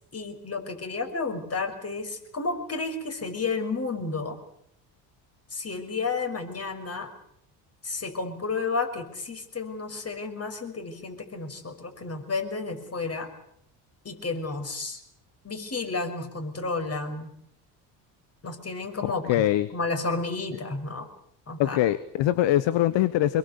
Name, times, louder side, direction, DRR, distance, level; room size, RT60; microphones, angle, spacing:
voice 1, 0.1-4.4 5.5-7.1 7.8-13.3 14.0-15.0 15.4-17.3 18.4-19.4 19.7-21.1 21.5-21.8, left 3 dB, 30° left, 6 dB, 5.9 m, -31 dB
voice 2, 19.3-19.7 21.6-23.4, left 13 dB, 65° left, 16 dB, 1.3 m, -23 dB
24.5 x 21.5 x 8.4 m, 0.69 s
hypercardioid pair, 65°, 48 cm